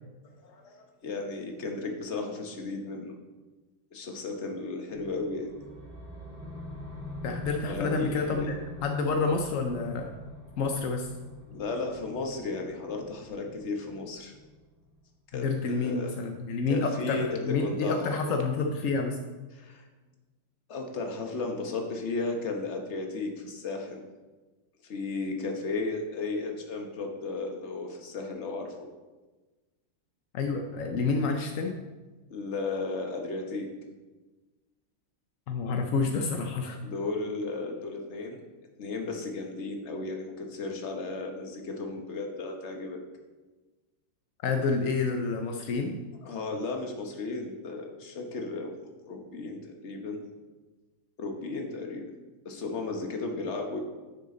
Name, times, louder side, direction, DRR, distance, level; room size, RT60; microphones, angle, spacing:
voice 1, 0.4-3.2 3.9-5.5 7.6-8.6 11.5-14.3 15.3-16.1 16.7-18.4 19.5-19.9 20.7-24.0 24.8-28.8 32.3-33.7 36.8-38.4 38.8-43.0 46.2-48.8 49.0-50.2 51.2-52.1 52.4-53.8, left 3 dB, 40° left, 3 dB, 1.1 m, -34 dB
sound 1, 4.9-15.0, equal, 5° right, 2.1 m, -43 dB
voice 2, 7.2-10.1 10.6-11.1 15.3-19.2 30.3-31.8 35.5-36.8 44.4-46.0, left 4 dB, 70° left, 3 dB, 0.7 m, -29 dB
9.8 x 6.8 x 3.8 m, 1.2 s
omnidirectional pair, 2.3 m